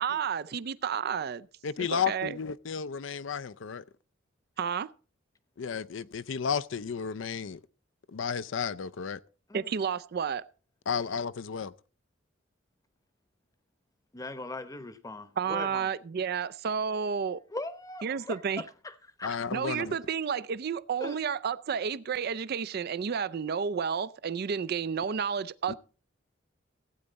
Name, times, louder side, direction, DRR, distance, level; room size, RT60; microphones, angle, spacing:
voice 1, 0.0-1.5 1.9-2.4 4.6-4.9 9.5-10.4 15.4-17.4 18.0-18.6 19.5-25.7, right 6 dB, 55° right, 0.4 m, -31 dB
voice 2, 1.6-3.8 5.6-7.6 8.1-9.2 10.9-11.7 19.2-20.0 25.7-25.8, left 6 dB, 70° left, 0.5 m, -33 dB
voice 3, 14.1-15.9 17.5-18.4 18.8-19.3 21.0-21.2, left 2 dB, 20° left, 0.9 m, -40 dB
15.5 x 8.7 x 4.0 m
head